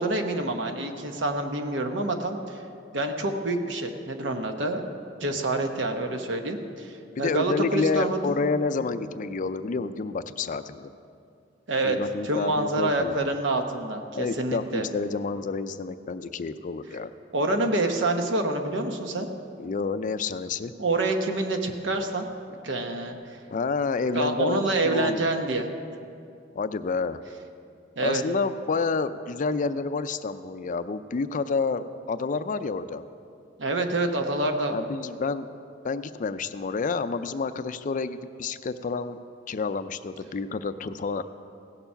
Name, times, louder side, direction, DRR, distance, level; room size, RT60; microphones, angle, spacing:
voice 1, 0.0-2.6 2.9-4.8 5.2-8.2 11.7-12.0 12.2-14.8 17.3-19.3 20.8-22.3 22.6-23.2 24.1-25.7 28.0-28.2 33.6-34.8, right 2 dB, 70° right, 5 dB, 1.0 m, -27 dB
voice 2, 7.2-10.9 11.8-13.3 14.1-17.1 19.6-20.7 23.5-25.3 26.5-27.2 28.0-33.0 34.7-35.5 35.8-39.2 39.5-41.2, left 4 dB, 45° left, 12 dB, 0.4 m, -29 dB
16.5 x 7.0 x 5.7 m, 2.5 s
head